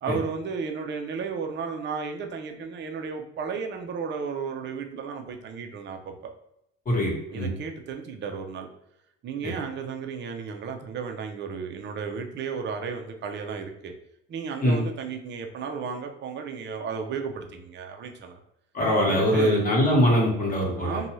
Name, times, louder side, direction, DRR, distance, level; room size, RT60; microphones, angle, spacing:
voice 1, 0.0-6.1 7.3-8.7 9.2-13.9 14.3-18.4 19.1-19.7 20.8-21.1, right 5 dB, 40° right, 4 dB, 0.5 m, -33 dB
voice 2, 6.9-7.5 14.6-14.8 18.7-21.1, equal, 30° left, -3 dB, 1.2 m, -22 dB
2.6 x 2.3 x 3.0 m, 0.78 s
supercardioid pair, 100°, 30 cm